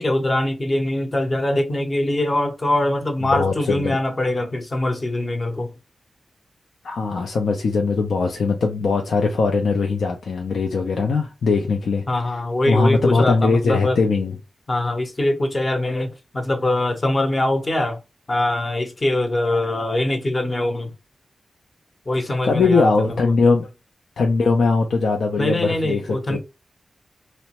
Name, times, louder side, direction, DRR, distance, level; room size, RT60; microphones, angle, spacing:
voice 1, 0.0-5.7 12.1-14.0 14.7-18.0 18.3-20.9 22.1-23.3 25.4-26.4, left 1 dB, 30° left, 0.7 m, -23 dB
voice 2, 3.3-4.0 6.8-12.0 12.7-14.3 22.4-23.7 24.2-26.0 26.3-26.4, left 4 dB, 80° left, 0.5 m, -20 dB
3.2 x 2.0 x 2.9 m
wide cardioid pair, 100°, 0 cm